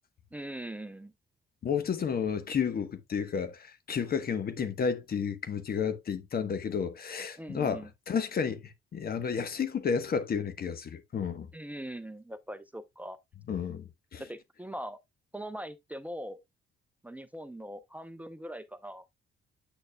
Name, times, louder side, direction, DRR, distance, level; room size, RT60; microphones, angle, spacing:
voice 1, 0.3-1.1 7.4-7.9 11.5-13.2 14.3-15.0 15.3-16.4 17.0-19.0, right 1 dB, 10° right, 0.7 m, -41 dB
voice 2, 1.6-11.5 13.5-14.2, left 6 dB, 50° left, 1.1 m, -32 dB
8.1 x 6.4 x 2.2 m
cardioid pair, 90°, 20 cm